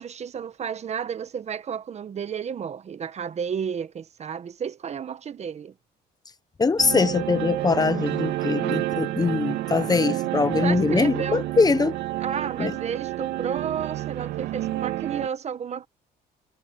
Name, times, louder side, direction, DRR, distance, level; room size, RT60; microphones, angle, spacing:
voice 1, 0.0-5.7 10.6-11.4 12.2-15.9, right 7 dB, 40° right, 1.2 m, -32 dB
voice 2, 6.6-11.9 12.6-12.7, left 4 dB, 20° left, 1.1 m, -22 dB
sound 1, 6.8-15.3, right 16 dB, 85° right, 3.4 m, -29 dB
cardioid pair, 110°, 17 cm